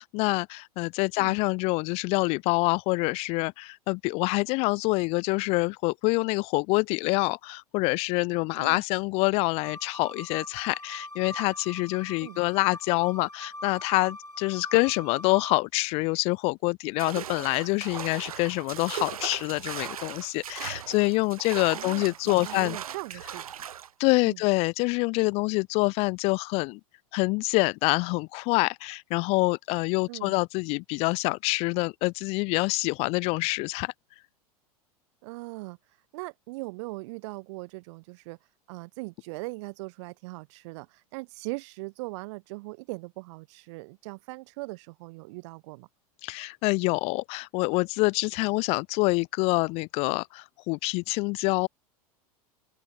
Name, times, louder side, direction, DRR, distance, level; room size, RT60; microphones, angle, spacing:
voice 1, 0.0-22.8 24.0-26.8 27.1-33.9 46.2-51.7, left 27 dB, 30° left, 0.3 m, -26 dB
sound 1, 9.6-15.6, left 1 dB, 90° left, 4.3 m, -42 dB
sound 2, 17.0-23.9, right 9 dB, 65° right, 2.7 m, -38 dB
voice 2, 21.7-23.4 24.3-24.4 30.1-30.3 35.2-35.8 36.1-38.4 38.7-45.9, right 25 dB, 50° right, 4.1 m, -40 dB
open air
figure-of-eight pair, 90°, 19 cm